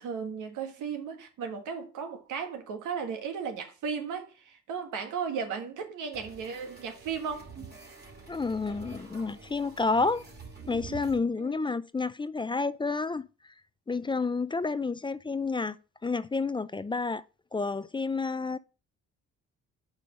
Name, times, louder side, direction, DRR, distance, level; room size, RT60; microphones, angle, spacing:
voice 1, 0.0-7.5 11.4-11.7, right 6 dB, 85° right, 1.6 m, -35 dB
sound 1, 6.1-11.2, right 3 dB, 35° right, 2.2 m, -46 dB
voice 2, 8.3-10.2 10.7-13.3 13.9-15.8 16.0-17.2 17.5-18.6, left 4 dB, 15° left, 0.3 m, -30 dB
5.3 x 4.8 x 6.2 m
cardioid pair, 90°, 30 cm